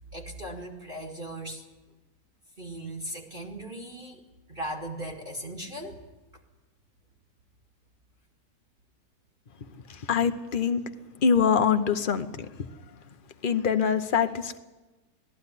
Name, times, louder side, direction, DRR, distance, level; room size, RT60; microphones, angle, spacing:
voice 1, 0.1-1.6 2.6-4.2 4.5-6.0, right 1 dB, 30° right, 1 dB, 2.1 m, -38 dB
voice 2, 9.9-10.8 11.2-12.5 13.4-14.6, left 6 dB, 40° left, 9 dB, 0.9 m, -24 dB
19.0 x 14.5 x 9.8 m, 1.2 s
omnidirectional pair, 1.8 m